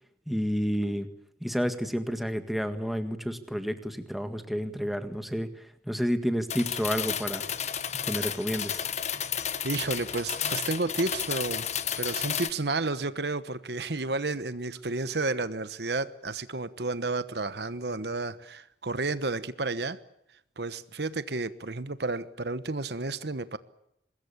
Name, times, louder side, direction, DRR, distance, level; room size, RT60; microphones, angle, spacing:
voice 1, 0.3-1.1 1.4-5.5 5.9-7.4 8.0-8.9, equal, ahead, 8 dB, 1.7 m, -30 dB
sound 1, 6.5-12.5, left 8 dB, 40° left, 1.2 m, -32 dB
voice 2, 9.6-11.7 12.0-20.0 20.6-23.6, right 3 dB, 60° right, 14 dB, 1.1 m, -31 dB
24.5 x 21.0 x 8.6 m, 0.79 s
head